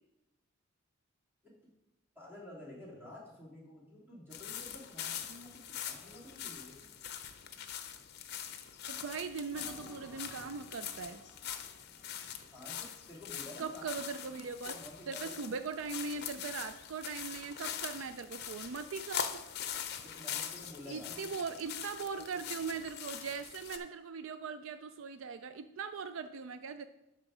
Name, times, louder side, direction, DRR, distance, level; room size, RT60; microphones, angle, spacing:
voice 1, 2.1-6.9 12.5-13.8 14.2-15.4 20.0-21.3 22.1-22.3, left 1 dB, 10° right, -5 dB, 2.6 m, -51 dB
sound 1, 4.3-23.8, left 9 dB, 50° left, 0.7 m, -43 dB
voice 2, 8.9-11.2 13.6-14.8 15.1-19.4 20.9-26.8, right 5 dB, 65° right, 11 dB, 0.4 m, -40 dB
sound 2, 9.5-12.9, equal, 15° left, 3.5 m, -56 dB
12.0 x 4.3 x 5.0 m, 0.93 s
head